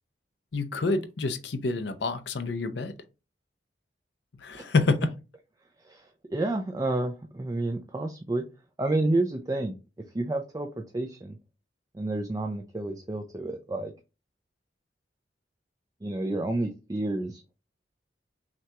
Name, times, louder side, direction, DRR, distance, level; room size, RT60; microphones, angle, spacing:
voice 1, 0.5-2.9 4.4-5.1, left 3 dB, 75° left, 0.6 m, -27 dB
voice 2, 6.3-8.4 8.8-9.7 10.1-11.4 11.9-13.9 16.0-17.4, right 2 dB, 20° right, 0.4 m, -30 dB
5.8 x 2.3 x 2.9 m
head